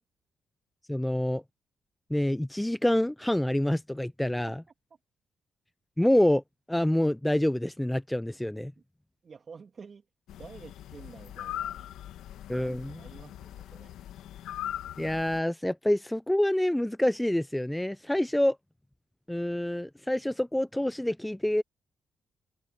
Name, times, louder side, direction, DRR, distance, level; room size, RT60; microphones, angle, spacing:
voice 1, 0.9-1.4 2.1-4.6 6.0-6.4 6.7-8.7 12.5-13.0 15.0-18.6 19.3-21.6, left 1 dB, 5° left, 0.4 m, -27 dB
voice 2, 9.2-10.0 10.4-11.9 12.6-13.9, right 5 dB, 40° right, 2.7 m, -49 dB
sound 1, 10.3-15.4, left 12 dB, 85° left, 1.9 m, -40 dB
open air
cardioid pair, 90°, 0 cm